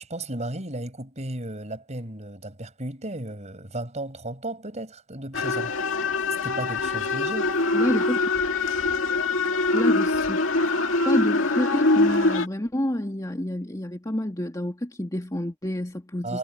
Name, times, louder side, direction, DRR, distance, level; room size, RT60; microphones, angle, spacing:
voice 1, 0.0-5.7 6.4-7.5 16.2-16.4, right 1 dB, 35° right, 6.0 m, -34 dB
sound 1, 5.3-12.5, left 2 dB, 75° left, 2.1 m, -23 dB
voice 2, 7.7-8.2 9.7-10.4 11.0-16.4, left 1 dB, 20° left, 2.2 m, -28 dB
head